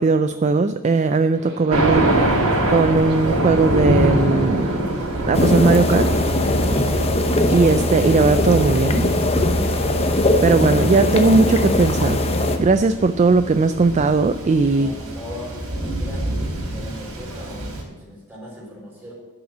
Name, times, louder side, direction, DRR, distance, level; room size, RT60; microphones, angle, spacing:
voice 1, 0.0-2.1 2.7-4.7 5.3-6.1 7.5-9.1 10.4-14.9, right 3 dB, 30° right, 10 dB, 0.3 m, -18 dB
sound 1, 1.3-12.0, equal, 55° right, 3.0 m, -41 dB
Thunder, 1.7-17.8, right 1 dB, 85° right, 3.8 m, -25 dB
sound 2, 5.3-12.6, left 1 dB, 30° left, 0.9 m, -20 dB
voice 2, 14.7-19.1, left 1 dB, 10° right, -3 dB, 4.0 m, -39 dB
11.5 x 6.0 x 7.3 m, 1.4 s
head